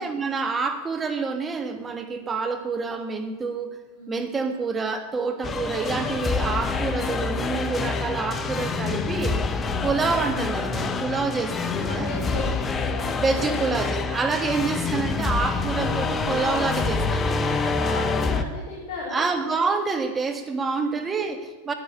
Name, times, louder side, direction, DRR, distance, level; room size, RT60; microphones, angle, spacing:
voice 1, 0.0-3.8 4.1-9.4 9.8-12.1 13.2-17.8 19.1-21.7, right 4 dB, 20° right, 7 dB, 1.7 m, -27 dB
sound 1, 5.4-18.4, left 4 dB, 20° left, 1.0 m, -26 dB
voice 2, 11.8-13.8 17.7-19.3 20.6-20.9, left 2 dB, 40° left, -6 dB, 4.8 m, -36 dB
10.0 x 9.9 x 8.2 m, 1.3 s
hypercardioid pair, 120°, 0 cm